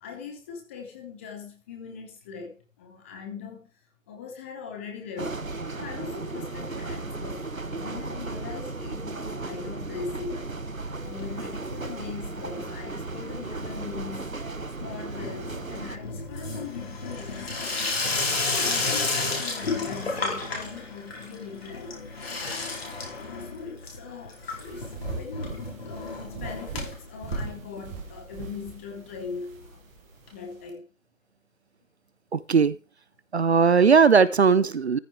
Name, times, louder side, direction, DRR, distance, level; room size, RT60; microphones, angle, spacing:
voice 1, 0.0-3.7 4.1-5.4 5.8-10.5 11.0-14.4 14.8-17.8 18.5-22.3 23.2-29.8 30.3-30.8, left 5 dB, 10° left, 0.8 m, -40 dB
sound 1, 5.2-16.0, right 3 dB, 90° right, 1.2 m, -35 dB
Water tap faucet / Sink (filling or washing), 11.0-11.8 12.1-12.6 12.9-28.2 28.5-28.6 28.8-28.9 29.1-29.2 30.3-30.4, left 3 dB, 50° left, 4.5 m, -32 dB
sound 2, 24.3-30.7, right 5 dB, 15° right, 1.3 m, -40 dB
voice 2, 32.3-32.7 33.3-35.0, right 5 dB, 55° right, 0.6 m, -18 dB
14.0 x 5.8 x 4.6 m
figure-of-eight pair, 140°, 39 cm